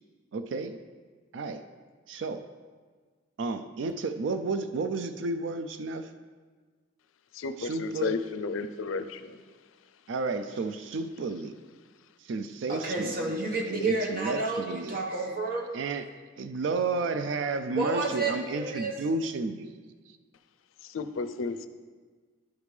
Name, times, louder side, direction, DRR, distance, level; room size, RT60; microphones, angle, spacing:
voice 1, 0.3-0.8 1.3-1.6 2.1-2.4 3.4-6.1 7.6-8.1 10.1-11.5 12.2-13.3 13.6-15.0 15.7-16.0 16.4-19.8, right 3 dB, 65° right, 10 dB, 0.3 m, -32 dB
voice 2, 7.3-9.3 20.9-21.7, left 4 dB, 80° left, 10 dB, 0.4 m, -32 dB
voice 3, 12.7-15.6 17.7-18.9, right 3 dB, 45° right, 0 dB, 1.1 m, -30 dB
11.5 x 5.1 x 3.2 m, 1.5 s
head